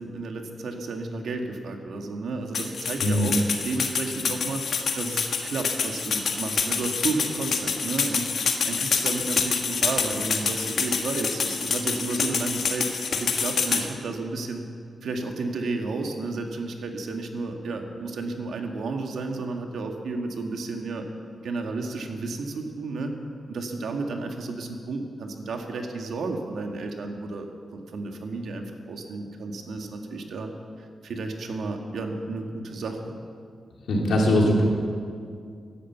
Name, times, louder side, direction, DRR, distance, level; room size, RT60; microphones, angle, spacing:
voice 1, 0.0-3.4 3.6-4.7 4.9-12.9 13.1-14.6 15.0-21.0 21.4-23.1 23.5-27.5 27.7-30.5 30.8-33.2, right 3 dB, 80° right, 3 dB, 1.6 m, -32 dB
sound 1, 2.5-13.8, left 5 dB, 65° left, 1.4 m, -27 dB
voice 2, 3.0-3.3 33.9-34.6, left 1 dB, 85° left, -1 dB, 2.9 m, -21 dB
11.5 x 11.5 x 8.1 m, 2.3 s
wide cardioid pair, 140°, 0 cm